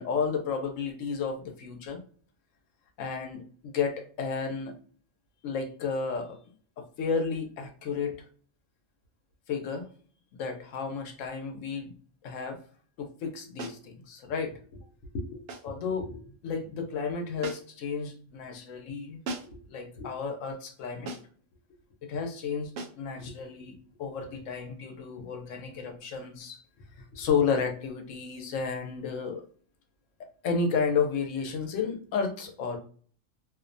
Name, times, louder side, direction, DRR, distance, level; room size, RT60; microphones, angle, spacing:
voice 1, 0.0-2.0 3.0-4.7 5.4-6.4 6.8-8.2 9.5-9.9 10.3-11.9 12.2-12.6 13.0-14.9 15.1-19.2 19.7-21.2 22.0-22.7 23.0-26.6 27.0-29.5 30.4-32.8, left 5 dB, 80° left, 4 dB, 1.0 m, -32 dB
sound 1, 13.6-13.9 15.5-15.8 17.4-17.9 19.2-19.7 21.1-21.4 22.8-23.1, right 3 dB, 65° right, 0.7 m, -39 dB
2.5 x 2.1 x 2.5 m, 0.44 s
omnidirectional pair, 1.3 m